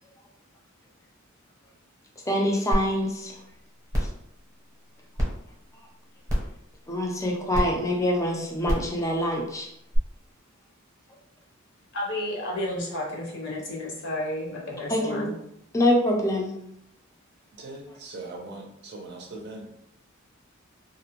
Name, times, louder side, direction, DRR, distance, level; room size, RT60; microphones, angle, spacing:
voice 1, 2.3-3.3 6.9-9.7 14.9-15.3 15.7-16.5, left 1 dB, 15° left, 0 dB, 0.4 m, -25 dB
sound 1, 2.7-2.8 3.3-3.4 3.9-4.2 5.2-5.3 6.3-6.5 7.5-7.6 8.6-8.9 9.9-10.0, equal, 15° right, 0.8 m, -24 dB
voice 2, 11.9-15.3, left 1 dB, 60° left, -2 dB, 0.6 m, -32 dB
voice 3, 17.5-19.7, right 2 dB, 55° right, 1 dB, 0.5 m, -40 dB
2.4 x 2.1 x 2.8 m, 0.77 s
head